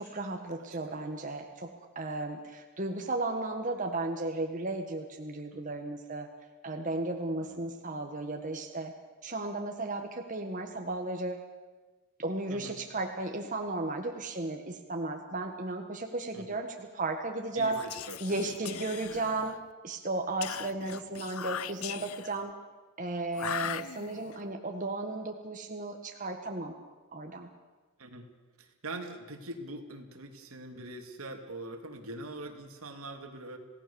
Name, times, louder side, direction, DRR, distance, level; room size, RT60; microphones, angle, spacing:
voice 1, 0.0-6.3 6.6-8.9 9.2-11.4 12.2-17.8 18.2-19.5 19.8-22.5 23.0-26.7 27.1-27.5, right 2 dB, 35° right, 3 dB, 1.7 m, -34 dB
voice 2, 12.5-12.8 16.3-16.6 17.5-19.4 20.7-20.9 28.0-28.3 28.6-33.6, right 2 dB, 75° right, 4 dB, 2.8 m, -44 dB
Whispering, 17.7-19.7 20.4-22.4 23.3-24.4, left 9 dB, 80° left, 0.6 m, -39 dB
27.5 x 17.5 x 7.1 m, 1.3 s
head